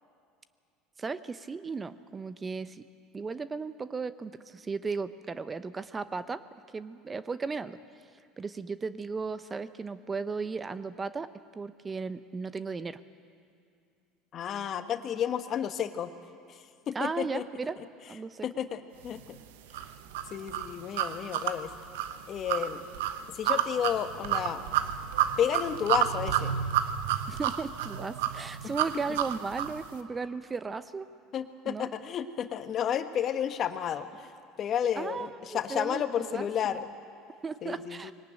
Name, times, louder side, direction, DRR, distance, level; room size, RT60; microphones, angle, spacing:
voice 1, 1.0-2.8 3.1-6.4 6.7-7.8 8.4-13.0 16.9-17.8 18.1-18.5 27.3-31.1 31.6-31.9 34.9-36.5 37.4-38.1, right 4 dB, 25° right, 13 dB, 0.9 m, -36 dB
voice 2, 14.3-16.1 16.5-16.6 16.9-17.5 18.4-19.4 20.3-21.7 22.3-22.8 23.3-24.6 25.4-26.6 28.6-28.7 31.3-34.3 34.6-36.9 37.6-38.1, left 9 dB, 45° left, 9 dB, 1.4 m, -31 dB
sound 1, 19.7-29.8, right 10 dB, 75° right, 1.0 m, -30 dB
21.5 x 18.5 x 9.1 m, 2.4 s
hypercardioid pair, 75°, 0 cm